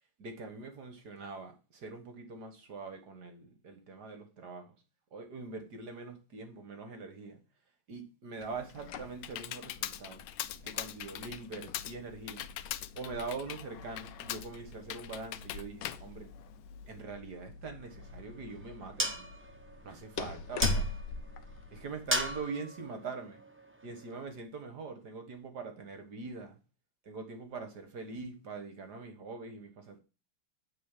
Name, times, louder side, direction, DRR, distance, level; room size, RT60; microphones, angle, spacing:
voice 1, 0.2-4.7 5.1-7.4 7.9-10.2 10.6-12.5 12.9-16.3 16.9-19.3 19.8-20.9 21.7-23.4 23.8-26.6 27.0-30.0, right 4 dB, 55° right, 1.8 m, -43 dB
Computer keyboard, 8.4-17.0, left 13 dB, 85° left, 1.5 m, -42 dB
sound 1, 8.4-22.4, left 3 dB, 65° left, 1.4 m, -42 dB
sound 2, 17.8-24.2, right 1 dB, 10° right, 0.5 m, -39 dB
9.6 x 3.8 x 7.3 m
omnidirectional pair, 2.3 m